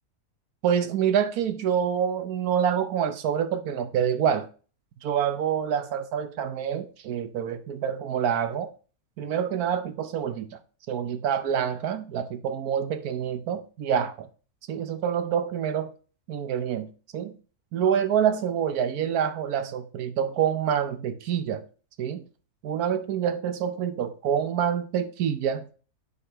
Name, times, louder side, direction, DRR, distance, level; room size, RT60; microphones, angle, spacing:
voice 1, 0.6-4.5 5.0-8.7 9.2-10.6 10.9-14.3 14.7-15.9 16.3-17.3 17.7-21.6 22.0-22.2 22.6-25.7, right 8 dB, 75° right, 1.2 m, -27 dB
9.7 x 5.5 x 2.9 m
omnidirectional pair, 1.6 m